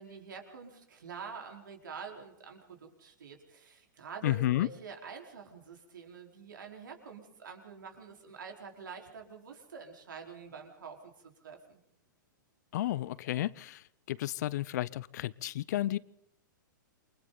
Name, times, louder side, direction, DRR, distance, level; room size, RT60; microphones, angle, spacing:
voice 1, 0.0-11.8, right 5 dB, 75° right, 2 dB, 4.3 m, -47 dB
voice 2, 4.2-4.7 12.7-16.0, left 14 dB, 55° left, 22 dB, 0.7 m, -32 dB
28.0 x 24.0 x 4.0 m, 0.80 s
hypercardioid pair, 110°, 11 cm